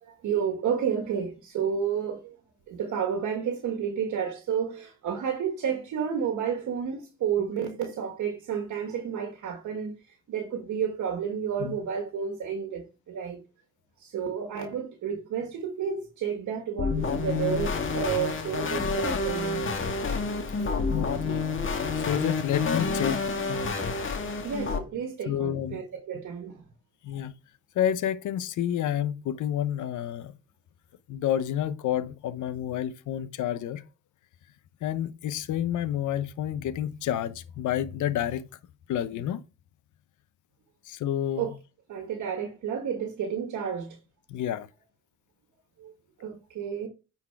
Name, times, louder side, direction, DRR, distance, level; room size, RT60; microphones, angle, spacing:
voice 1, 0.0-2.4 2.7-13.4 14.0-19.6 24.4-26.6 41.4-41.5 41.9-44.0 45.8-45.9 46.2-46.9, right 7 dB, 70° right, 1.7 m, -31 dB
sound 1, 16.8-24.8, left 4 dB, 40° left, 1.8 m, -28 dB
voice 2, 20.9-21.5 22.0-23.6 25.3-25.8 27.0-27.3 27.7-30.3 31.1-33.8 34.8-38.4 38.9-39.4 40.8-41.5 44.3-44.7, left 10 dB, 75° left, 0.9 m, -29 dB
9.6 x 4.5 x 4.7 m
cardioid pair, 90°, 30 cm